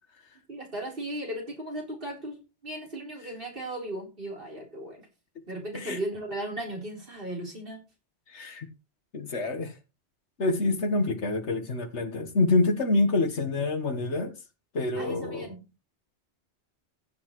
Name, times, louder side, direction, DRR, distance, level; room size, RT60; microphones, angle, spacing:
voice 1, 0.5-5.0 5.5-7.8 14.9-15.6, right 1 dB, 50° right, 4.2 m, -36 dB
voice 2, 8.3-8.7 9.1-9.7 10.4-14.3 14.7-15.5, left 2 dB, 80° left, 1.7 m, -26 dB
15.0 x 8.0 x 3.1 m
omnidirectional pair, 1.2 m